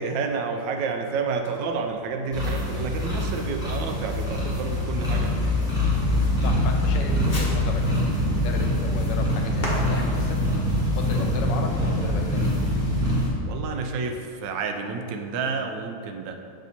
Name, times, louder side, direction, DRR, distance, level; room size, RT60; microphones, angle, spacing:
voice 1, 0.0-5.5 13.5-16.4, right 4 dB, 85° right, 5 dB, 1.3 m, -30 dB
Fireworks, 1.4-12.1, left 1 dB, 30° left, 1.1 m, -41 dB
sound 1, 2.3-13.3, left 1 dB, 5° right, 1.0 m, -24 dB
voice 2, 6.1-10.7 10.9-12.5, left 4 dB, 85° left, 3 dB, 1.4 m, -35 dB
6.1 x 4.1 x 4.2 m, 2.3 s
omnidirectional pair, 1.9 m